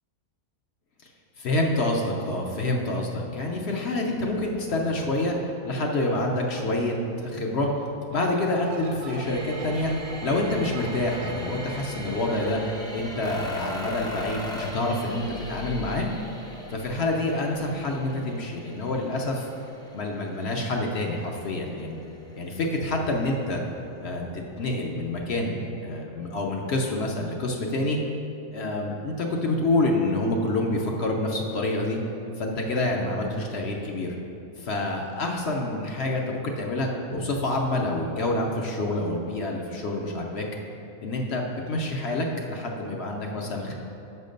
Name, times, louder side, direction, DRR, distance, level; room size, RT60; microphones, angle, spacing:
voice 1, 1.4-5.4 5.6-7.7 8.1-9.9 10.2-12.6 12.9-16.1 16.7-19.5 19.9-22.0 22.3-23.6 24.0-28.0 28.5-32.0 32.4-34.2 34.6-40.5 41.0-43.7, left 2 dB, 55° left, 1 dB, 0.8 m, -27 dB
sound 1, 8.0-13.3, right 4 dB, 80° right, 1.0 m, -43 dB
sound 2, 9.2-24.2 24.8-24.9, equal, 5° left, 0.4 m, -39 dB
6.4 x 5.7 x 5.2 m, 2.8 s
omnidirectional pair, 1.5 m